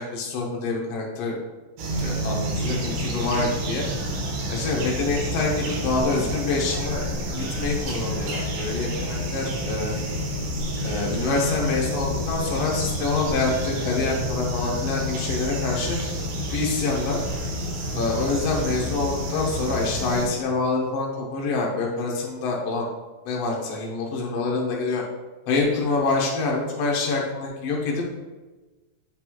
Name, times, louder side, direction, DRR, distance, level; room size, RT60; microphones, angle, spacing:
voice 1, 0.0-1.3 2.0-3.9 4.5-7.1 7.3-10.0 10.8-16.0 16.5-17.2 17.9-22.9 23.2-25.0 25.5-28.0, left 3 dB, 75° left, -2 dB, 1.4 m, -26 dB
sound 1, 1.8-20.3, equal, 80° right, 2.8 m, -29 dB
8.0 x 4.0 x 3.0 m, 1.2 s
omnidirectional pair, 4.4 m